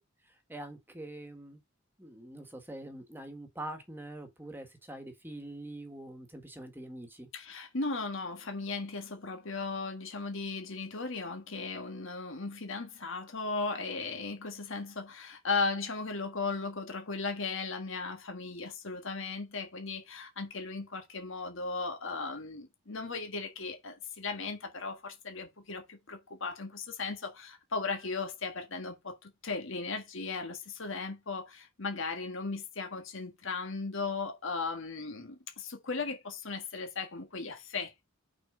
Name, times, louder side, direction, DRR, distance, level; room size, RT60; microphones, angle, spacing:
voice 1, 0.5-1.6 2.0-7.3, right 1 dB, 10° right, 1.6 m, -44 dB
voice 2, 7.3-38.0, left 4 dB, 65° left, 1.6 m, -37 dB
6.1 x 4.5 x 4.9 m
head